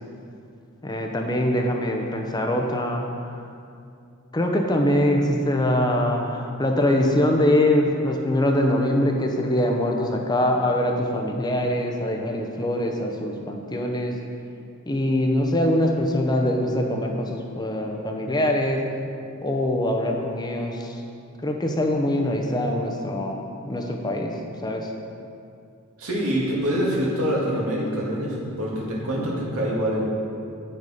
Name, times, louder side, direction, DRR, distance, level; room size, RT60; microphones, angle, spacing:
voice 1, 0.8-3.1 4.3-14.2 14.9-18.8 19.4-21.0 21.4-24.3 24.6-24.9, left 1 dB, 20° left, 2 dB, 0.7 m, -23 dB
voice 2, 26.0-30.0, equal, 75° right, -4 dB, 2.1 m, -25 dB
8.9 x 6.7 x 5.0 m, 2.5 s
head